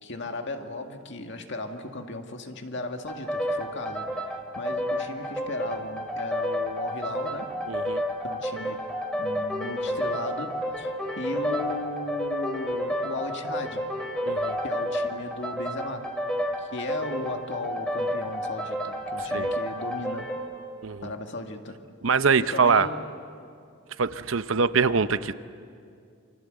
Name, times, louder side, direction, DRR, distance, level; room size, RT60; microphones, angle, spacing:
voice 1, 0.0-7.6 8.2-8.9 9.2-13.9 14.6-16.2 16.6-20.3 21.0-21.8 22.4-23.1, left 2 dB, 60° left, 4 dB, 2.1 m, -36 dB
sound 1, 3.1-20.5, equal, 5° left, 2.3 m, -30 dB
voice 2, 7.7-8.0 14.3-14.6 19.3-19.5 20.8-21.1 22.0-22.9 24.0-25.3, right 5 dB, 65° right, 13 dB, 0.7 m, -23 dB
29.0 x 25.0 x 8.0 m, 2.4 s
head